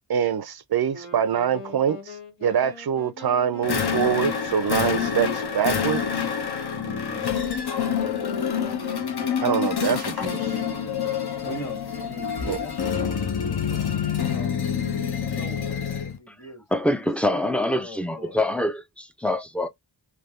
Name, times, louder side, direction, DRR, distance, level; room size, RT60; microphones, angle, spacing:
voice 1, 0.1-6.2 9.4-10.5 12.5-12.6, right 8 dB, 55° right, 0.5 m, -25 dB
Wind instrument woodwind instrument, 0.9-9.9, left 3 dB, 85° left, 1.3 m, -41 dB
sound 1, 3.6-16.2, left 7 dB, 60° left, 0.7 m, -27 dB
voice 2, 6.7-7.3 11.4-13.9 14.2-14.5 15.3-16.6 17.3-18.4, equal, 35° left, 1.6 m, -40 dB
voice 3, 16.7-19.7, left 1 dB, 5° left, 0.4 m, -25 dB
3.4 x 2.2 x 2.3 m
wide cardioid pair, 55°, 45 cm